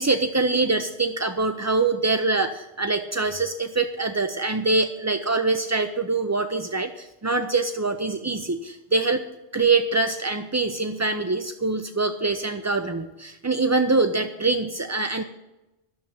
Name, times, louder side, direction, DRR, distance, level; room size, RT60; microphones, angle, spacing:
voice 1, 0.0-9.2 9.5-15.2, right 3 dB, 30° right, 7 dB, 0.3 m, -24 dB
11.5 x 7.0 x 9.0 m, 0.97 s
omnidirectional pair, 1.1 m